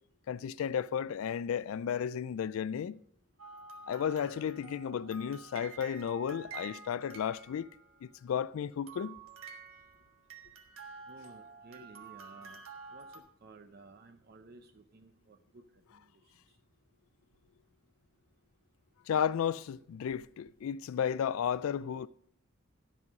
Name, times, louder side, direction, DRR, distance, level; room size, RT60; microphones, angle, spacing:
voice 1, 0.3-3.0 3.9-7.7 8.0-9.2 19.1-22.1, left 8 dB, 80° left, 0.3 m, -33 dB
sound 1, 3.4-8.1 8.9-13.2, right 5 dB, 80° right, 1.3 m, -49 dB
voice 2, 4.2-4.5 11.1-12.6 12.9-15.6 15.9-16.0, right 3 dB, 45° right, 0.5 m, -55 dB
12.0 x 5.6 x 6.1 m
head